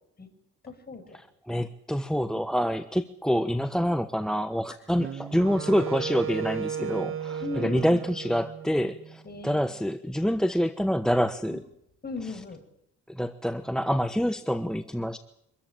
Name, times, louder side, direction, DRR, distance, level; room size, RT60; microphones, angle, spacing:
voice 1, 0.6-1.2 6.8-7.1 7.4-8.0 9.2-9.7 11.5-11.6 12.0-12.6, left 3 dB, 30° left, 6 dB, 5.6 m, -38 dB
voice 2, 1.5-11.6 13.1-15.2, equal, ahead, 10 dB, 1.0 m, -27 dB
Wind instrument woodwind instrument, 4.9-9.2, right 8 dB, 45° right, 1.0 m, -35 dB
25.0 x 14.0 x 9.0 m, 0.76 s
cardioid pair, 90°, 30 cm